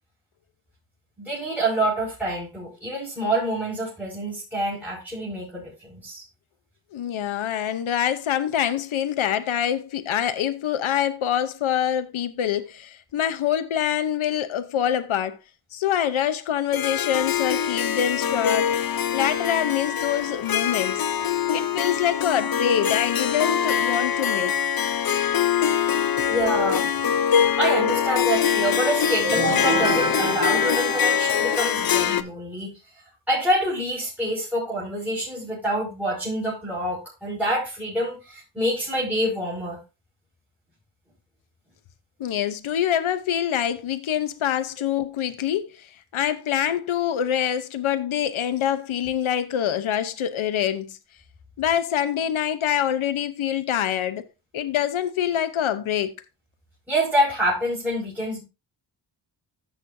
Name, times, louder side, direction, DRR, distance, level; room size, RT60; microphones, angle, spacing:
voice 1, 1.2-6.2 26.3-26.9 27.3-32.7 33.3-39.8 56.9-58.4, right 1 dB, 5° right, 5.7 m, -26 dB
voice 2, 6.9-15.4 15.7-18.7 19.1-21.1 21.5-24.5 42.2-51.0 51.6-54.2 54.5-56.2, left 10 dB, 80° left, 0.9 m, -25 dB
Harp, 16.7-32.2, left 8 dB, 50° left, 0.7 m, -23 dB
sound 1, 29.2-31.9, right 1 dB, 45° right, 4.0 m, -26 dB
15.0 x 6.3 x 2.7 m
cardioid pair, 80°, 48 cm